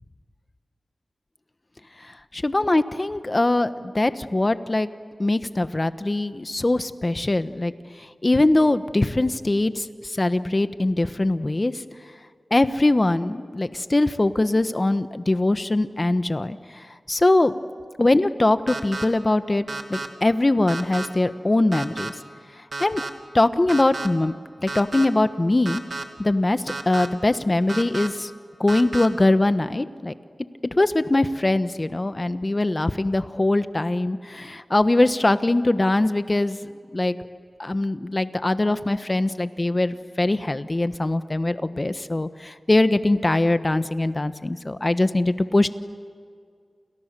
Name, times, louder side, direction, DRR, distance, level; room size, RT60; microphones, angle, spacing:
voice 1, 2.3-4.9 5.2-7.7 8.0-11.8 12.5-17.6 18.0-19.6 19.9-22.1 22.8-23.0 23.3-24.3 24.6-25.8 26.2-28.3 28.6-30.1 30.8-37.2 37.6-45.7, left 2 dB, 30° left, 11 dB, 1.2 m, -22 dB
sound 1, 18.7-19.0 19.7-20.1 20.7-21.1 21.7-22.1 22.7-23.1 23.7-24.1 24.7-25.0 25.6-26.0 26.7-27.1 27.7-28.1 28.7-29.1, right 3 dB, 50° right, 2.5 m, -31 dB
29.5 x 29.0 x 6.9 m, 2.1 s
wide cardioid pair, 70°, 0 cm